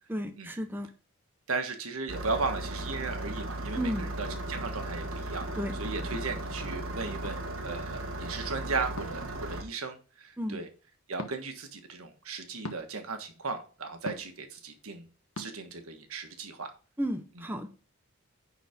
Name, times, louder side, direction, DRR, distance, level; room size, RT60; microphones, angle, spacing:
voice 1, 0.1-0.9 3.7-4.0 5.6-5.7 6.1-6.2 10.4-10.6 17.0-17.7, equal, 10° right, 6 dB, 0.8 m, -33 dB
voice 2, 1.5-5.5 5.8-10.7 11.1-15.0 15.4-16.7 17.4-17.5, right 4 dB, 85° right, 6 dB, 1.5 m, -36 dB
Engine starting, 2.1-9.6, right 1 dB, 65° right, 1.5 m, -36 dB
sound 1, 7.2-7.4 9.0-9.3 11.1-11.4 12.6-12.8 14.0-14.4 15.3-15.5, left 2 dB, 85° left, 1.1 m, -39 dB
10.0 x 4.2 x 5.1 m, 0.37 s
head